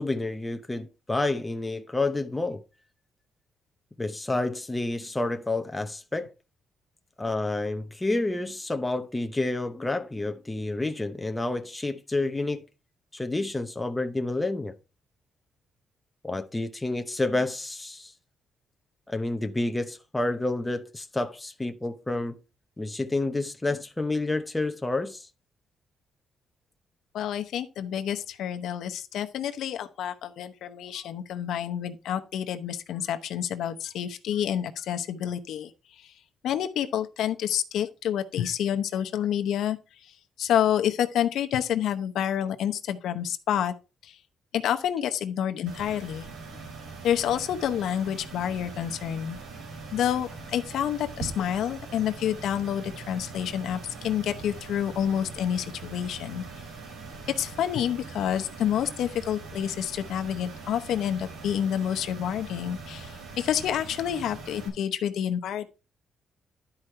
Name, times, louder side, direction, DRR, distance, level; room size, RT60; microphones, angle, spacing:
voice 1, 0.0-2.6 4.0-6.3 7.2-12.6 13.1-14.7 16.2-18.1 19.1-22.4 22.8-25.3, left 2 dB, 10° left, 0.8 m, -29 dB
voice 2, 27.1-35.7 36.0-36.1 36.4-40.1 40.4-43.7 44.0-44.2 44.5-46.3 47.0-49.4 49.9-56.6 57.3-65.7, left 10 dB, 80° left, 0.8 m, -28 dB
sound 1, 45.7-64.7, right 4 dB, 85° right, 3.9 m, -42 dB
11.5 x 4.9 x 4.4 m
cardioid pair, 130°, 0 cm